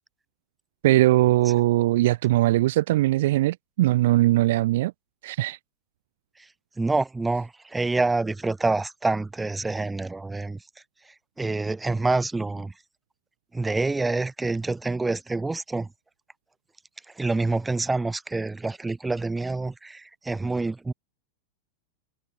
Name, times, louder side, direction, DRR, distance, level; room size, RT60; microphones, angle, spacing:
voice 1, 0.8-4.9 5.2-5.6, right 16 dB, 55° right, 0.8 m, -20 dB
voice 2, 6.8-10.6 11.4-12.7 13.5-15.9 17.2-20.9, right 3 dB, 10° right, 5.5 m, -27 dB
figure-of-eight pair, 90°, 0 cm